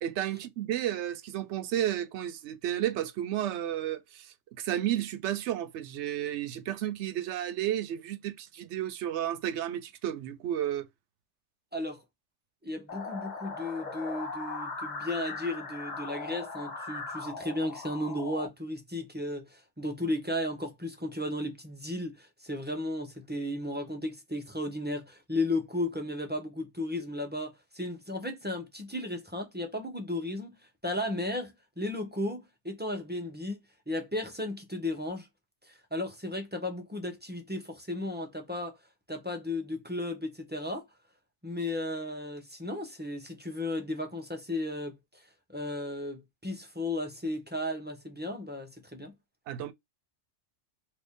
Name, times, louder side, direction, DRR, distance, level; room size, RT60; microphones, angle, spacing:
voice 1, 0.0-10.9 49.5-49.7, right 11 dB, 75° right, 0.9 m, -32 dB
voice 2, 11.7-12.0 12.6-30.5 30.8-33.6 33.9-35.3 35.6-38.8 39.1-40.8 41.4-45.2 45.5-49.1, left 1 dB, 15° right, 0.5 m, -34 dB
sound 1, 12.9-18.5, left 3 dB, 40° left, 0.9 m, -39 dB
3.0 x 2.6 x 3.5 m
omnidirectional pair, 1.2 m